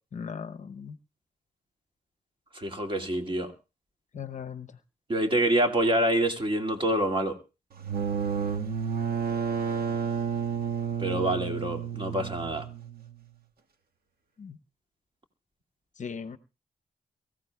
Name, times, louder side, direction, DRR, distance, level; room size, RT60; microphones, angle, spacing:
voice 1, 0.1-1.0 4.1-4.7 14.4-14.6 16.0-16.4, left 6 dB, 50° left, 10 dB, 0.8 m, -38 dB
voice 2, 2.5-3.5 5.1-7.4 11.0-12.6, right 1 dB, 30° right, 4 dB, 2.2 m, -26 dB
sound 1, 7.7-13.3, right 7 dB, 75° right, 1.6 m, -31 dB
23.0 x 14.5 x 2.3 m, 0.30 s
cardioid pair, 100°, 16 cm